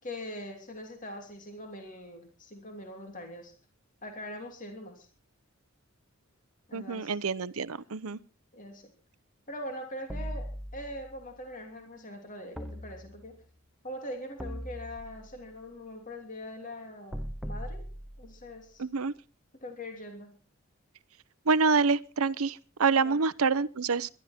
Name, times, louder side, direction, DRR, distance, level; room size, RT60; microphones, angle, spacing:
voice 1, 0.0-3.5 4.0-5.1 6.7-7.2 8.5-8.9 9.5-13.4 13.8-17.8 18.2-18.8 19.6-20.4 23.0-23.2, left 1 dB, 40° left, 3.0 m, -42 dB
voice 2, 6.7-8.2 18.8-19.1 21.5-24.1, right 4 dB, 90° right, 0.8 m, -27 dB
sound 1, 10.1-11.2 12.6-13.5 14.4-15.5 17.1-18.5, equal, ahead, 0.9 m, -39 dB
21.5 x 12.0 x 4.3 m
head